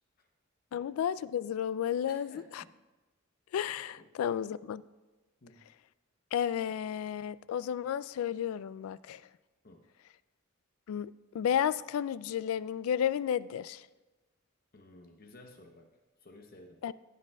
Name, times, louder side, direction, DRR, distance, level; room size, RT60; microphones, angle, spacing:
voice 1, 0.7-2.6 3.5-4.8 6.3-9.2 10.9-13.9 16.8-16.9, left 9 dB, 80° left, 17 dB, 0.3 m, -32 dB
voice 2, 2.1-2.7 3.9-4.1 5.4-5.6 9.6-9.9 14.7-15.9 16.2-16.8, left 1 dB, 45° left, 4 dB, 0.8 m, -54 dB
15.5 x 8.2 x 2.3 m, 1.2 s
head